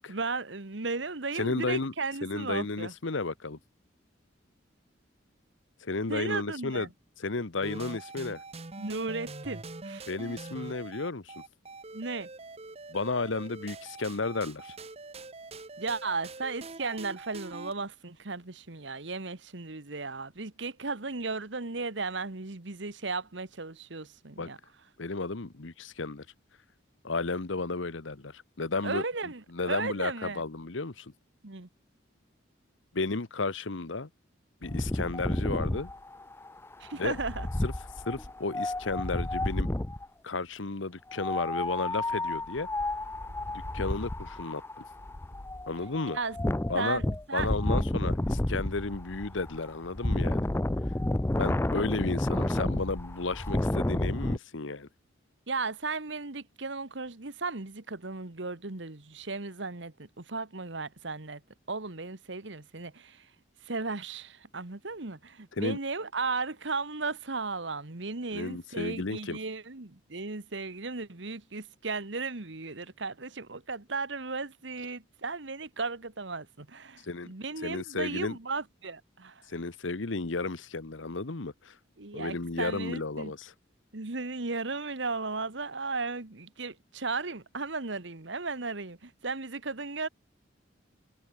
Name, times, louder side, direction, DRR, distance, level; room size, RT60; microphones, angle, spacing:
voice 1, 0.0-2.9 6.1-6.9 8.8-10.1 11.9-12.3 15.8-24.6 28.8-30.4 31.4-31.7 36.8-37.5 46.1-46.4 46.7-47.5 55.5-61.4 61.7-63.2 63.7-79.3 82.0-83.3 83.9-90.1, right 3 dB, 65° right, 1.5 m, -35 dB
voice 2, 1.3-1.9 2.2-3.6 5.8-6.9 7.2-8.4 10.1-11.3 12.9-14.7 24.4-24.5 25.0-26.2 27.0-29.0 29.5-31.1 32.9-34.1 34.6-35.9 37.0-37.1 37.6-37.7 38.1-39.7 40.2-42.7 43.7-44.6 45.7-46.2 46.7-47.0 47.3-50.5 51.4-54.9 65.5-65.8 68.3-69.4 77.0-77.3 77.6-78.4 79.5-81.7 82.1-83.5, left 3 dB, 75° left, 1.2 m, -33 dB
sound 1, 7.6-17.7, right 3 dB, 30° right, 1.1 m, -44 dB
Wind, 34.6-40.1 41.1-54.4, left 1 dB, 10° left, 0.5 m, -31 dB
head